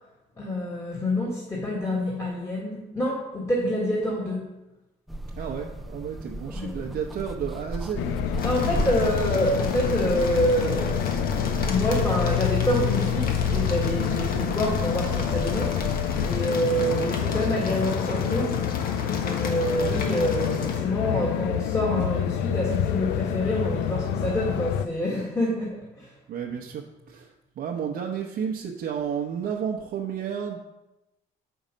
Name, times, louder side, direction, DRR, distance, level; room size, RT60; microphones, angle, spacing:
voice 1, 0.4-4.5 6.5-6.9 8.4-11.0 11.4-15.8 16.2-18.5 19.0-26.1, equal, 20° left, -5 dB, 1.8 m, -27 dB
sound 1, 5.1-16.4, right 1 dB, ahead, 0.4 m, -34 dB
voice 2, 5.4-8.8 26.3-30.6, right 7 dB, 60° right, 0 dB, 0.9 m, -32 dB
sound 2, 8.0-24.9, left 10 dB, 85° left, 0.4 m, -27 dB
sound 3, 8.4-20.8, left 4 dB, 60° left, 1.4 m, -34 dB
7.0 x 5.5 x 5.1 m, 0.95 s
cardioid pair, 110°, 17 cm